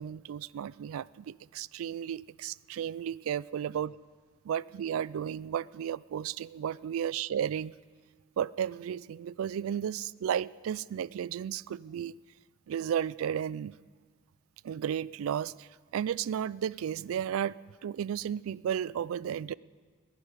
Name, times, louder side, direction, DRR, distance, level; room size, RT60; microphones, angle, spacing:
voice 1, 0.0-3.9 4.4-7.7 8.4-12.2 12.7-13.7 14.6-17.6 17.8-19.5, right 9 dB, 80° right, 22 dB, 0.3 m, -33 dB
21.0 x 11.0 x 5.1 m, 1.5 s
head